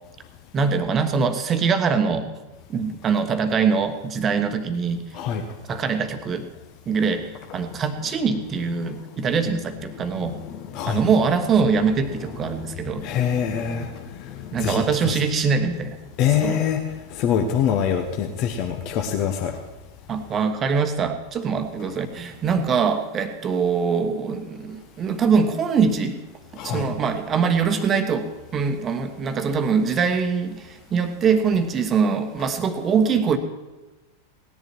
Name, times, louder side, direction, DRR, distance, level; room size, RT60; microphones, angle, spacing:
voice 1, 0.5-2.3 2.7-5.0 5.7-6.4 6.9-10.4 10.9-13.1 14.5-16.0 16.4-16.6 20.1-26.2 26.6-33.4, right 5 dB, 25° right, 8 dB, 1.3 m, -23 dB
voice 2, 5.1-5.4 7.7-7.8 8.8-9.0 10.0-11.1 12.1-15.2 16.2-19.6 26.5-26.9, left 8 dB, 40° left, 4 dB, 1.1 m, -26 dB
18.0 x 10.5 x 4.6 m, 1.1 s
figure-of-eight pair, 90°, 0 cm